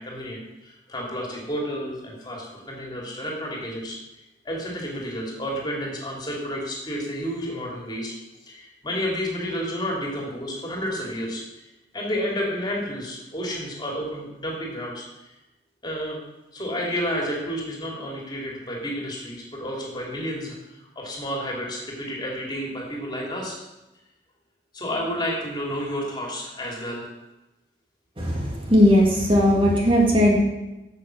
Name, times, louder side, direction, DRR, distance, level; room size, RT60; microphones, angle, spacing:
voice 1, 0.0-4.0 4.4-8.1 8.5-11.4 11.9-15.3 15.8-16.2 16.5-23.6 24.7-27.1, equal, 25° left, -2 dB, 2.9 m, -31 dB
voice 2, 28.2-30.4, equal, 30° right, -2 dB, 2.0 m, -18 dB
9.6 x 7.4 x 6.4 m, 1.0 s
head